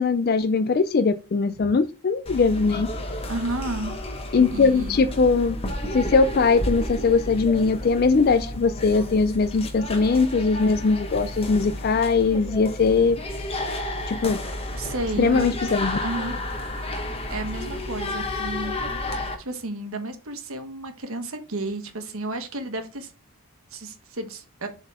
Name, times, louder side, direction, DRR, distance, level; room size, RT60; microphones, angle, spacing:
voice 1, 0.0-2.9 4.3-5.6 5.9-13.2 14.1-14.4 15.2-16.0, left 4 dB, 45° left, 11 dB, 0.3 m, -21 dB
sound 1, 2.3-19.4, left 1 dB, 25° left, 1.2 m, -32 dB
voice 2, 3.3-3.9 4.5-5.0 14.7-15.6 16.0-16.4 17.3-18.7 19.4-23.1 23.7-24.7, right 2 dB, 70° right, 7 dB, 1.3 m, -32 dB
7.0 x 4.0 x 4.2 m, 0.32 s
head